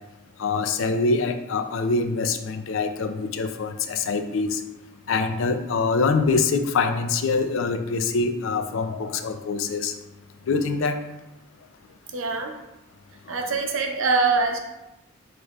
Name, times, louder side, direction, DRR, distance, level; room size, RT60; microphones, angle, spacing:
voice 1, 0.4-4.6 5.1-9.9 10.5-11.0, left 4 dB, 80° left, 8 dB, 0.4 m, -24 dB
voice 2, 12.1-12.5 13.3-14.6, right 4 dB, 85° right, 3 dB, 0.6 m, -23 dB
6.3 x 3.1 x 2.3 m, 0.96 s
head